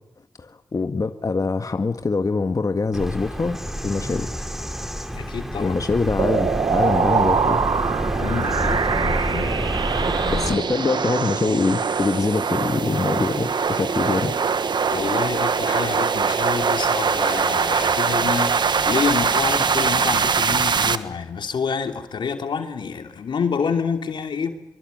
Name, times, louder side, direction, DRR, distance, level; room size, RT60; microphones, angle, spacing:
voice 1, 0.4-4.3 5.6-7.6 10.3-14.3, left 4 dB, 45° left, 1.8 m, -24 dB
Bird vocalization bird call bird song, 2.9-10.5, equal, 5° right, 3.8 m, -28 dB
voice 2, 5.1-5.8 8.2-9.6 10.0-10.7 14.9-24.5, left 6 dB, 80° left, 2.9 m, -28 dB
sound 1, 6.2-21.0, right 5 dB, 70° right, 1.5 m, -22 dB
26.0 x 23.5 x 9.4 m
cardioid pair, 50°, 8 cm